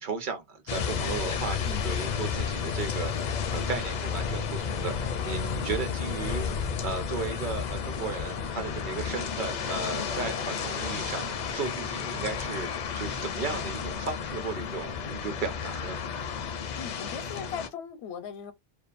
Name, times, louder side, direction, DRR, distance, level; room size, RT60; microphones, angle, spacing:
voice 1, 0.0-6.4 6.8-16.0, right 4 dB, 50° right, 0.8 m, -35 dB
sound 1, 0.7-17.7, left 6 dB, 55° left, 0.5 m, -32 dB
voice 2, 1.6-2.0 16.7-18.5, left 7 dB, 80° left, 0.8 m, -39 dB
2.7 x 2.2 x 2.4 m
omnidirectional pair, 1.1 m